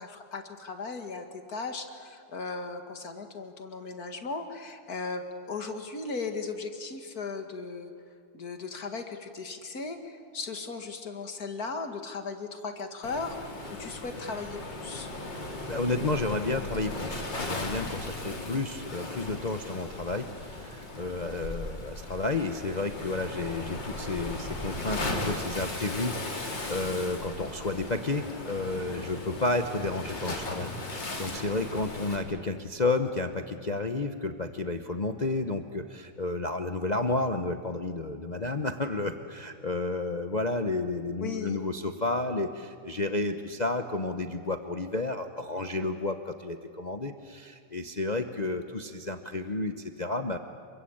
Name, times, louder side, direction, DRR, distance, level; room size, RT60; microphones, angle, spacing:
voice 1, 0.0-7.9 8.3-15.1 41.2-41.6, left 4 dB, 55° left, 6 dB, 2.5 m, -37 dB
Waves surf, 13.0-32.2, left 2 dB, 85° left, 4.1 m, -37 dB
voice 2, 15.3-50.4, left 2 dB, 30° left, 7 dB, 0.9 m, -31 dB
28.0 x 24.0 x 8.7 m, 2.3 s
omnidirectional pair, 1.9 m